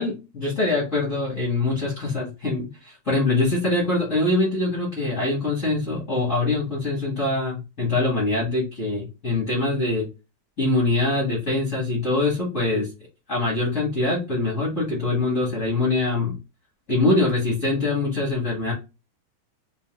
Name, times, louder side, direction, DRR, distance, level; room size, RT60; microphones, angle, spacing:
voice 1, 0.0-10.1 10.6-12.9 13.3-16.4 16.9-18.7, left 2 dB, 40° left, -5 dB, 1.1 m, -23 dB
5.4 x 2.5 x 2.4 m, 0.28 s
omnidirectional pair, 3.5 m